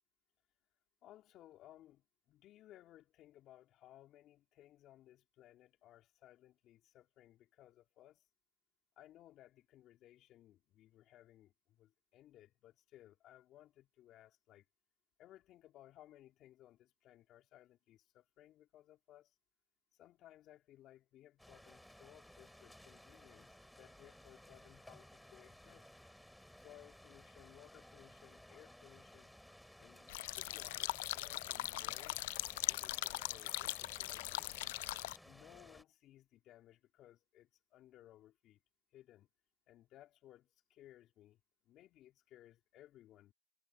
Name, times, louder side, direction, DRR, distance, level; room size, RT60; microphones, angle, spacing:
voice 1, 1.0-8.2 9.0-14.6 15.2-19.3 19.9-25.9 26.6-29.3 29.8-32.2 32.6-34.8 35.2-38.6 38.9-39.3 39.7-43.3, left 13 dB, 50° left, 3.6 m, -61 dB
sound 1, 21.4-35.8, left 1 dB, ahead, 5.3 m, -59 dB
sound 2, 30.1-35.2, left 19 dB, 80° left, 0.3 m, -40 dB
supercardioid pair, 100°, 0 cm